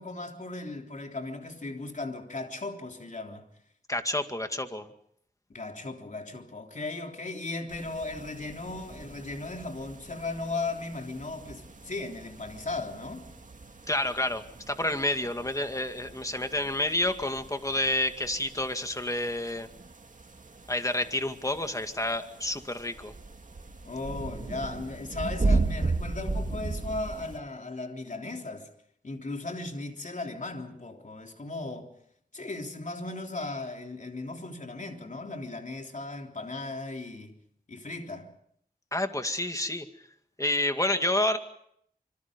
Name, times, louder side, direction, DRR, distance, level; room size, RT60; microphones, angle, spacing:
voice 1, 0.0-3.5 5.5-13.3 23.8-28.7 29.0-31.9 32.3-37.4 37.7-38.3, left 2 dB, 50° left, 3.5 m, -37 dB
voice 2, 3.9-4.9 13.9-19.7 20.7-23.1 38.9-39.9 40.4-41.4, left 1 dB, 20° left, 2.2 m, -29 dB
sound 1, 7.7-27.4, right 3 dB, 55° right, 2.3 m, -36 dB
26.0 x 25.5 x 5.3 m
wide cardioid pair, 60°, 16 cm